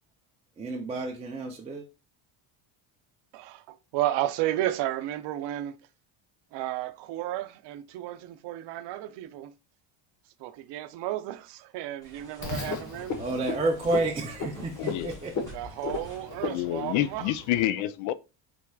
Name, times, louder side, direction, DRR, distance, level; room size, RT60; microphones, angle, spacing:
voice 1, 0.6-1.8 13.2-15.4, right 2 dB, 15° right, 0.4 m, -30 dB
voice 2, 3.3-5.9 6.5-9.5 10.4-13.2 15.5-17.2, right 14 dB, 60° right, 0.6 m, -33 dB
sound 1, 12.0-16.3, equal, 5° left, 2.3 m, -48 dB
Frog, 12.4-17.6, left 4 dB, 35° left, 1.2 m, -36 dB
voice 3, 14.8-15.1 16.4-18.1, left 13 dB, 80° left, 0.6 m, -28 dB
4.6 x 4.2 x 2.2 m
cardioid pair, 155°, 48 cm